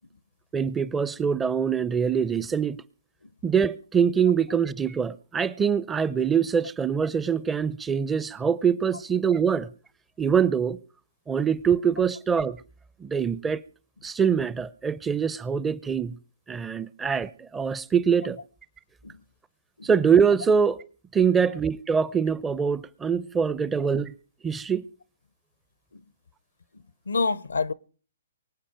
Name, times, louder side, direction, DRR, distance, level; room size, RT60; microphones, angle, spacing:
voice 1, 0.5-2.8 3.4-9.7 10.2-10.8 11.3-12.6 13.0-13.6 14.0-16.2 16.5-18.4 19.8-20.8 21.1-24.1 24.4-24.9, right 7 dB, 15° right, 0.6 m, -24 dB
voice 2, 26.7-27.7, left 4 dB, 85° left, 0.7 m, -29 dB
24.0 x 8.8 x 5.0 m
hypercardioid pair, 130°, 0 cm